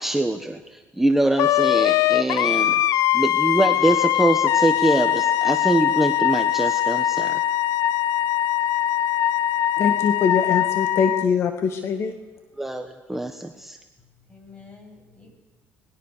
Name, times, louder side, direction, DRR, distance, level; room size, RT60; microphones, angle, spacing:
voice 1, 0.0-2.8 3.1-7.4 12.6-13.8, right 1 dB, 5° right, 5 dB, 1.4 m, -23 dB
Wind instrument woodwind instrument, 1.4-11.2, left 12 dB, 70° left, 0.6 m, -21 dB
voice 2, 9.8-12.1, left 6 dB, 55° left, 6 dB, 1.9 m, -23 dB
voice 3, 14.0-15.4, left 4 dB, 25° left, 3 dB, 7.9 m, -48 dB
25.5 x 20.5 x 6.8 m, 1.2 s
cardioid pair, 115°, 5 cm